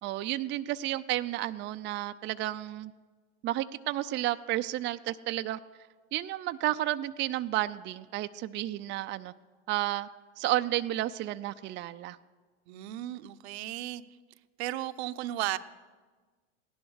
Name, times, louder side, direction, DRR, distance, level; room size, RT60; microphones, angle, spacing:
voice 1, 0.0-2.9 3.4-5.6 6.1-9.3 9.7-10.1 10.4-12.2, right 15 dB, 35° right, 9 dB, 0.5 m, -32 dB
voice 2, 12.7-14.0 14.6-15.6, right 15 dB, 70° right, 12 dB, 0.7 m, -35 dB
17.0 x 11.5 x 6.4 m, 1.4 s
hypercardioid pair, 90°, 34 cm